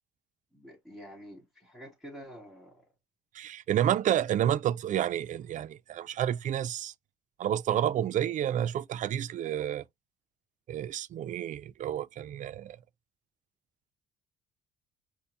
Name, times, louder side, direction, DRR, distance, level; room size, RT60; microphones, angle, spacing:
voice 1, 0.5-2.8, equal, ahead, 3.4 m, -48 dB
voice 2, 3.3-6.9 7.4-9.8 10.7-12.8, right 10 dB, 50° right, 0.4 m, -30 dB
5.4 x 2.7 x 3.5 m
cardioid pair, 110°, 17 cm